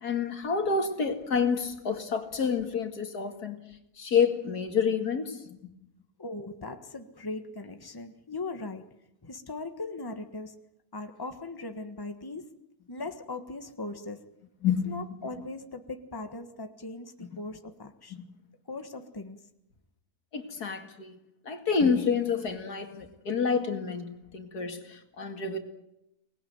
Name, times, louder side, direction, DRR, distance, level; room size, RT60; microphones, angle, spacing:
voice 1, 0.0-3.6 4.0-5.6 14.6-14.8 18.1-18.3 20.3-21.2 21.5-25.6, left 6 dB, 85° left, 2.7 m, -28 dB
voice 2, 6.2-8.9 9.2-10.6 10.9-12.6 12.9-14.3 14.9-18.1 18.7-19.4, left 2 dB, 15° left, 1.5 m, -39 dB
24.5 x 19.5 x 9.5 m
omnidirectional pair, 1.6 m